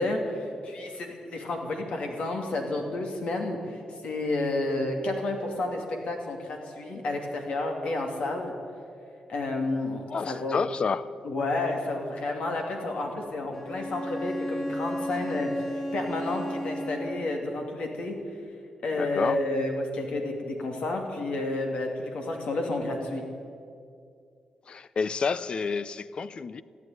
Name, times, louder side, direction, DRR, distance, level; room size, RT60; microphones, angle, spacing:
voice 1, 0.0-8.5 9.3-10.6 11.2-18.2 18.8-23.2, left 2 dB, 70° left, 2 dB, 2.7 m, -31 dB
voice 2, 10.1-11.1 19.0-19.4 24.7-26.6, left 5 dB, 55° left, 17 dB, 0.6 m, -30 dB
Bowed string instrument, 13.5-17.3, equal, 15° left, 4.5 m, -33 dB
15.0 x 9.8 x 9.4 m, 2.4 s
cardioid pair, 75°, 2 cm